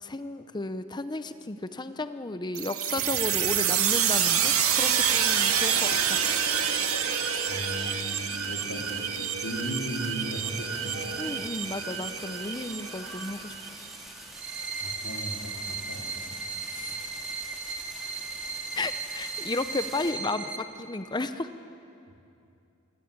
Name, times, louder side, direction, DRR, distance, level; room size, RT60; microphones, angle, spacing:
voice 1, 0.0-6.2 11.2-13.5 16.7-16.9 18.8-21.5, left 2 dB, 20° left, 11 dB, 0.7 m, -33 dB
sound 1, 2.5-14.0, right 8 dB, 90° right, 2.1 m, -27 dB
sound 2, 3.9-20.1, equal, ahead, 3.7 m, -46 dB
voice 2, 7.5-9.0 9.4-11.1 14.8-16.4 18.0-18.1, equal, 85° left, 1 dB, 3.8 m, -37 dB
sound 3, 14.3-20.6, right 4 dB, 55° right, 2.2 m, -36 dB
27.0 x 22.0 x 8.7 m, 2.6 s
head